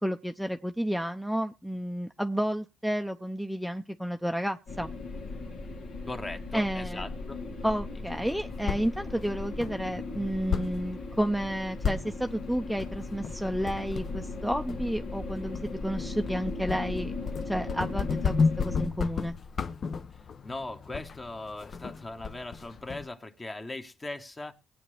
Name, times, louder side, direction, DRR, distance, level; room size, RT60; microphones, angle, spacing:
voice 1, 0.0-4.9 6.5-7.0 7.6-17.1 17.5-19.3, equal, ahead, 7 dB, 0.7 m, -31 dB
sound 1, 4.7-18.9, left 3 dB, 75° left, 2.6 m, -38 dB
voice 2, 6.1-7.4 20.4-24.5, left 2 dB, 25° left, 7 dB, 1.5 m, -39 dB
sound 2, 8.2-23.1, left 5 dB, 50° left, 0.7 m, -34 dB
19.5 x 8.7 x 3.4 m, 0.30 s
cardioid pair, 90°, 0 cm